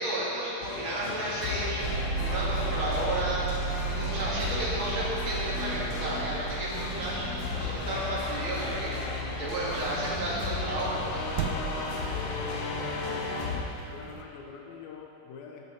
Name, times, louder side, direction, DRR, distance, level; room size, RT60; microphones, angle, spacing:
voice 1, 0.0-3.4 3.9-9.0 9.4-11.2, right 1 dB, 40° right, -7 dB, 2.3 m, -32 dB
sound 1, 0.6-13.6, left 4 dB, 70° left, 2.0 m, -34 dB
sound 2, 1.8-14.2, right 5 dB, 75° right, 2.0 m, -36 dB
voice 2, 13.1-13.6 13.9-15.6, left 6 dB, 90° left, 1 dB, 2.6 m, -46 dB
12.5 x 6.9 x 4.5 m, 3.0 s
omnidirectional pair, 4.2 m